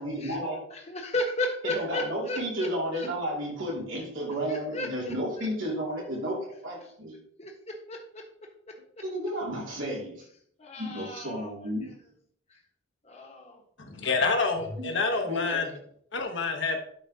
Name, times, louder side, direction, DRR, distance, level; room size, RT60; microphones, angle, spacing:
voice 1, 0.0-0.6 1.7-7.1 9.0-10.2 10.8-11.9 14.8-14.9 15.2-15.6, equal, 70° right, -3 dB, 2.7 m, -32 dB
voice 2, 0.7-3.1 4.2-5.5 6.8-6.9 7.4-7.5 7.9-8.2 10.6-11.5 11.8-11.9 12.5-12.6 13.0-13.6 15.4-15.6 16.4-16.5, left 1 dB, 30° left, 1 dB, 1.4 m, -34 dB
voice 3, 13.8-15.7 16.1-16.8, left 4 dB, 60° left, 4 dB, 1.2 m, -28 dB
11.5 x 4.9 x 2.8 m, 0.66 s
head